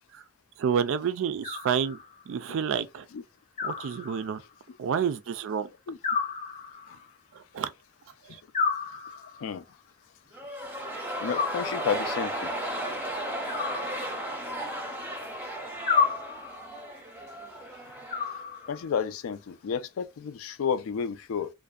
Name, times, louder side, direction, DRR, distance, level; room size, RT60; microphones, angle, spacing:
voice 1, 0.6-2.0 2.3-3.0 3.6-4.4 4.8-5.7 7.3-7.7 8.3-8.4, right 7 dB, 60° right, 0.3 m, -29 dB
Animal, 1.4-2.3 3.6-4.6 6.0-7.1 8.5-9.5 11.3-12.2 13.5-14.6 15.9-16.8 18.1-19.0, left 6 dB, 35° left, 0.6 m, -31 dB
sound 1, 10.3-18.4 18.7-18.8, right 1 dB, 10° right, 0.5 m, -35 dB
voice 2, 11.2-12.5 18.7-21.5, left 6 dB, 70° left, 0.3 m, -31 dB
2.5 x 2.1 x 2.3 m
head